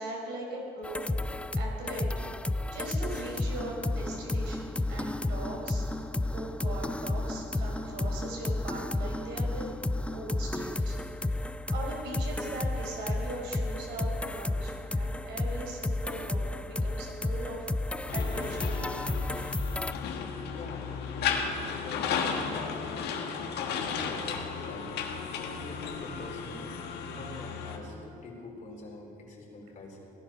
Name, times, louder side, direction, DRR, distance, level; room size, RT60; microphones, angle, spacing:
voice 1, 0.0-2.1 2.7-5.8 6.3-9.7 10.1-11.0 11.7-17.7 18.1-19.0, right 2 dB, 85° right, -1 dB, 4.4 m, -40 dB
sound 1, 0.8-19.9, left 2 dB, 5° left, 0.4 m, -32 dB
sound 2, 18.1-27.8, left 6 dB, 80° left, 1.6 m, -34 dB
voice 2, 20.5-24.9 25.3-26.7 27.0-30.1, left 2 dB, 50° left, -2 dB, 3.8 m, -45 dB
17.5 x 11.5 x 5.9 m, 2.8 s
cardioid pair, 110°, 17 cm